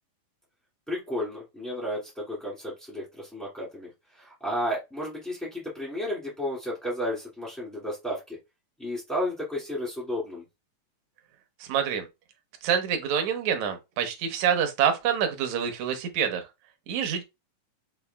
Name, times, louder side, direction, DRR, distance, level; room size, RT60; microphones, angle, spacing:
voice 1, 0.9-3.9 4.1-8.4 8.8-10.4, equal, ahead, 0.3 m, -32 dB
voice 2, 11.6-12.1 12.6-16.4 16.9-17.2, right 8 dB, 75° right, 1.7 m, -26 dB
6.8 x 2.3 x 2.2 m
omnidirectional pair, 4.2 m